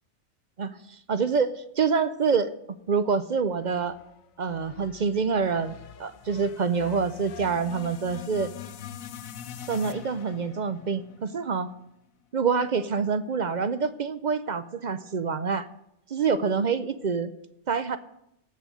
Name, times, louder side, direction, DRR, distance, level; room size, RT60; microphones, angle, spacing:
voice 1, 0.6-4.0 4.4-5.7 6.0-8.5 9.7-11.7 12.3-15.7 16.1-17.3 17.7-18.0, right 5 dB, 50° right, 12 dB, 0.5 m, -26 dB
sound 1, 3.6-12.0, left 9 dB, 85° left, 1.1 m, -44 dB
16.5 x 5.5 x 8.7 m, 0.82 s
omnidirectional pair, 1.4 m